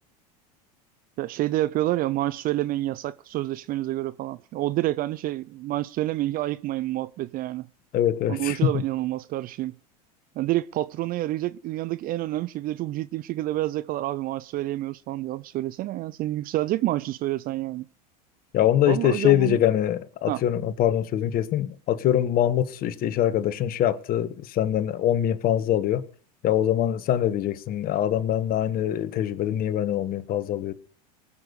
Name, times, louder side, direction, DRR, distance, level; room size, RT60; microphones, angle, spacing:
voice 1, 1.2-7.7 8.3-9.7 10.4-17.9 18.9-19.6 20.3-20.4, right 16 dB, 45° right, 0.6 m, -28 dB
voice 2, 7.9-8.8 18.5-26.0 26.4-30.7, left 11 dB, 45° left, 1.4 m, -23 dB
20.0 x 7.2 x 6.5 m
hypercardioid pair, 100°, 21 cm